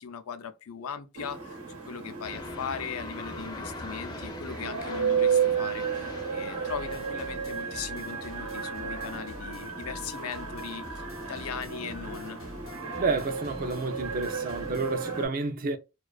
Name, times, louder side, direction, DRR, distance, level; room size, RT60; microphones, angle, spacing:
voice 1, 0.0-12.4, left 7 dB, 90° left, 0.5 m, -39 dB
sound 1, 1.1-15.3, right 6 dB, 80° right, 0.9 m, -33 dB
sound 2, 2.2-7.4, left 2 dB, 20° left, 0.4 m, -42 dB
sound 3, 6.7-15.0, left 1 dB, 70° left, 0.8 m, -47 dB
voice 2, 13.0-15.8, right 3 dB, 40° right, 0.4 m, -30 dB
2.4 x 2.3 x 2.2 m
head